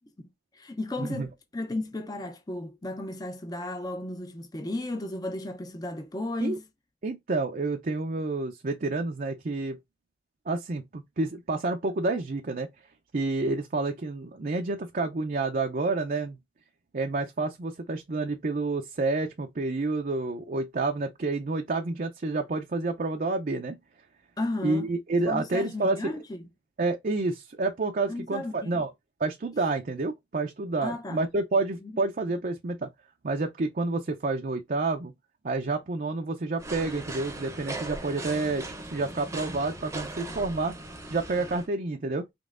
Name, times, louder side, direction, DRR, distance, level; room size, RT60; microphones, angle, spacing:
voice 1, 0.5-6.6 24.4-24.9 25.3-26.5 28.1-28.8 30.8-31.2 31.8-32.0, left 2 dB, 20° left, 0.5 m, -34 dB
voice 2, 7.0-9.8 10.5-12.7 13.1-16.4 16.9-23.8 24.6-26.2 26.8-28.9 29.2-32.9 33.2-35.1 35.4-40.7 41.1-42.3, right 3 dB, 50° right, 0.5 m, -29 dB
sound 1, 36.6-41.7, right 2 dB, 15° right, 0.7 m, -39 dB
5.2 x 3.0 x 2.5 m
head